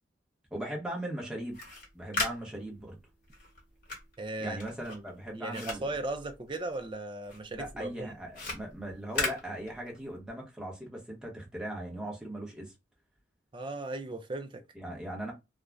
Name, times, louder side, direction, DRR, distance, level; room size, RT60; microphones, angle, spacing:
voice 1, 0.5-1.6 1.9-3.0 4.4-5.9 7.5-12.7 14.7-15.3, right 1 dB, 5° right, 0.9 m, -39 dB
sound 1, 1.4-6.9 7.2-10.2, left 2 dB, 50° left, 1.1 m, -38 dB
voice 2, 4.2-4.6 4.9-5.0 5.3-8.1 13.5-14.6, right 2 dB, 25° right, 0.4 m, -37 dB
2.5 x 2.1 x 3.3 m
head